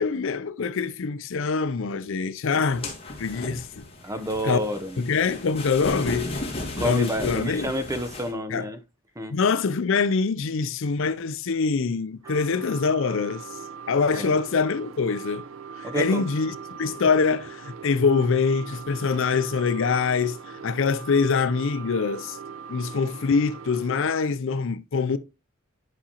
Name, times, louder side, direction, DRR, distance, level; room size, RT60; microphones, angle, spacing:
voice 1, 0.0-2.9 3.2-3.8 4.4-4.6 5.0-6.3 6.8-7.7 8.5-8.6 9.3-13.5 13.9-15.4 15.8-20.4 20.6-22.4 22.7-25.2, left 5 dB, 65° left, 0.5 m, -24 dB
sound 1, 2.7-8.3, left 2 dB, 30° left, 2.1 m, -35 dB
voice 2, 4.0-5.0 6.8-8.8 9.2-9.3 14.1-14.3 15.8-16.2, equal, 15° right, 0.6 m, -29 dB
sound 2, 12.2-24.1, right 6 dB, 70° right, 0.6 m, -41 dB
9.9 x 5.0 x 2.9 m
head